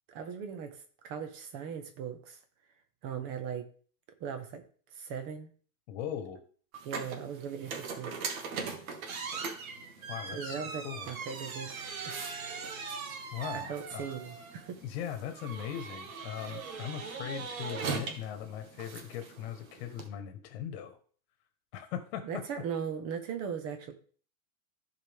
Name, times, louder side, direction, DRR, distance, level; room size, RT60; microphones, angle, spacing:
voice 1, 0.1-2.4 3.0-3.7 4.2-4.6 4.9-5.5 6.8-8.2 10.3-11.7 12.0-12.2 13.5-14.8 22.2-23.9, right 7 dB, 35° right, 7 dB, 1.4 m, -39 dB
voice 2, 5.9-6.4 10.1-11.1 13.3-14.1 14.8-21.0 21.7-22.4, left 10 dB, 45° left, 8 dB, 1.4 m, -39 dB
sound 1, 6.7-20.1, right 5 dB, 70° right, 2.0 m, -40 dB
15.0 x 4.9 x 3.6 m, 0.44 s
supercardioid pair, 160°, 42 cm